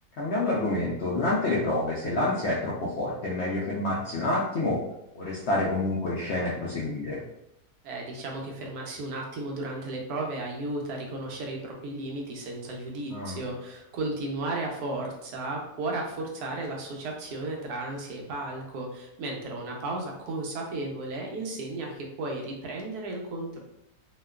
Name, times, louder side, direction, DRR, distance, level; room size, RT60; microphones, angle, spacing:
voice 1, 0.2-4.8 5.2-7.2 13.1-13.4, left 2 dB, 70° left, -5 dB, 0.6 m, -28 dB
voice 2, 7.8-23.6, right 2 dB, 80° right, 0 dB, 1.1 m, -34 dB
2.8 x 2.3 x 2.2 m, 0.80 s
omnidirectional pair, 1.6 m